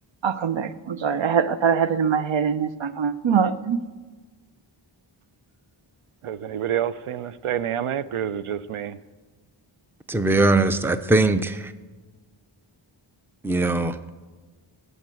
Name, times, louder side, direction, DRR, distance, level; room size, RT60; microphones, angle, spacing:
voice 1, 0.2-3.8, right 7 dB, 65° right, 13 dB, 0.9 m, -23 dB
voice 2, 6.2-9.0, right 9 dB, 90° right, 15 dB, 0.6 m, -28 dB
voice 3, 10.1-11.7 13.4-14.0, right 2 dB, 5° right, 11 dB, 0.7 m, -21 dB
17.5 x 8.1 x 7.6 m, 1.4 s
wide cardioid pair, 75°, 50 cm